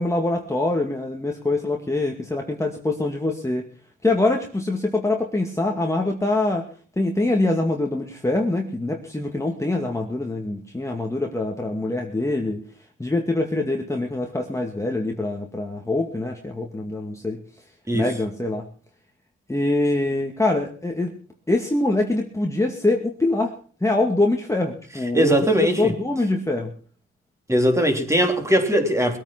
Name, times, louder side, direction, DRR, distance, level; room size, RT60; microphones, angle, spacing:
voice 1, 0.0-3.7 4.0-6.7 7.0-12.6 13.0-17.4 17.9-18.7 19.5-21.1 21.5-23.5 23.8-25.3 25.6-26.7, left 2 dB, 10° left, 2.3 m, -24 dB
voice 2, 25.1-25.9 27.5-29.2, equal, 10° right, 3.5 m, -20 dB
21.0 x 9.1 x 6.1 m
cardioid pair, 90°, 30 cm